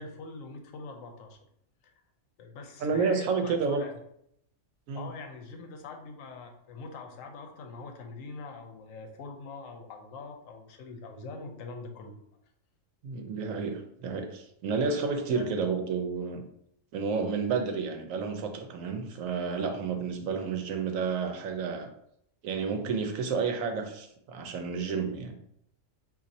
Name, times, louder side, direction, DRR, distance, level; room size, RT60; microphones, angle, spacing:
voice 1, 0.0-1.4 1.8-1.9 2.4-4.0 4.9-12.2 15.3-15.5, left 4 dB, 85° left, 4 dB, 1.0 m, -43 dB
voice 2, 2.8-3.8 4.9-5.1 13.0-16.4 16.9-21.9 22.4-25.4, right 5 dB, 85° right, 5 dB, 1.0 m, -30 dB
2.6 x 2.6 x 4.0 m, 0.73 s
omnidirectional pair, 1.3 m